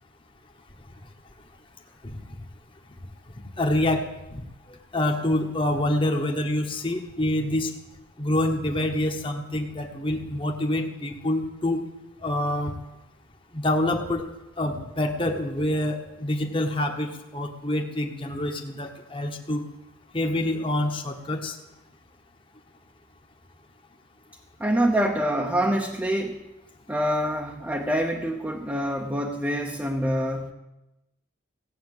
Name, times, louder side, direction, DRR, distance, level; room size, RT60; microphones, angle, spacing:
voice 1, 3.6-4.1 4.9-7.7 8.2-11.8 12.2-12.7 13.5-14.2 14.6-19.6 20.1-21.5, left 1 dB, 25° left, 3 dB, 1.2 m, -26 dB
voice 2, 24.6-26.4 26.9-30.5, equal, 10° right, 1 dB, 0.8 m, -26 dB
16.0 x 8.4 x 7.9 m, 0.95 s
head